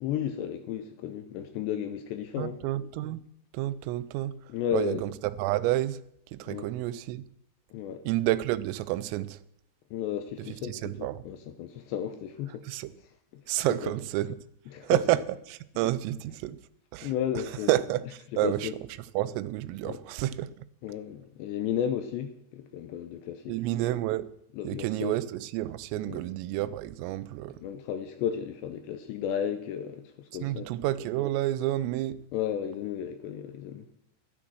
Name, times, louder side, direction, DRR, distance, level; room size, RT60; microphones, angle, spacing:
voice 1, 0.0-2.6 4.5-5.0 6.4-6.7 7.7-8.0 9.9-12.7 13.3-13.9 14.7-15.0 17.0-17.7 18.4-18.7 19.9-20.0 20.8-23.5 24.6-25.1 26.0-26.2 27.6-30.7 32.3-33.9, left 9 dB, 80° left, 2.6 m, -33 dB
voice 2, 2.4-3.2 3.5-6.0 6.3-7.2 8.1-9.4 10.4-11.3 12.6-12.9 13.5-14.4 14.8-16.6 16.9-18.7 19.2-20.7 23.5-24.3 24.7-27.6 30.4-32.2, right 15 dB, 90° right, 3.4 m, -30 dB
12.5 x 11.5 x 6.2 m
omnidirectional pair, 5.8 m